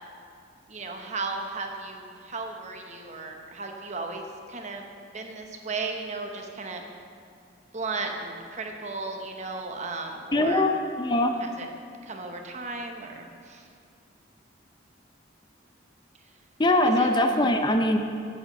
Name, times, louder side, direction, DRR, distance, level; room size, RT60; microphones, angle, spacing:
voice 1, 0.7-4.8 5.1-6.8 7.7-10.6 11.4-11.7 12.0-13.7 16.8-17.1, right 3 dB, 35° right, 3 dB, 0.9 m, -35 dB
voice 2, 10.3-11.4 16.6-18.0, left 1 dB, 25° left, 5 dB, 0.5 m, -22 dB
8.0 x 7.7 x 6.5 m, 2.3 s
head